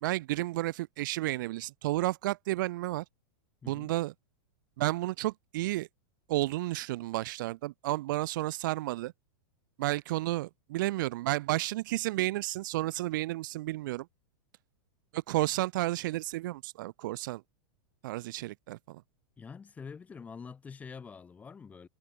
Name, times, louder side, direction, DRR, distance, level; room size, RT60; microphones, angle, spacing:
voice 1, 0.0-3.0 3.7-4.1 4.8-5.9 6.3-9.1 9.8-14.1 15.1-17.4 18.0-19.0, right 17 dB, 50° right, 2.5 m, -32 dB
voice 2, 3.6-3.9 19.4-21.9, left 5 dB, 10° left, 5.7 m, -46 dB
supercardioid pair, 170°, 13 cm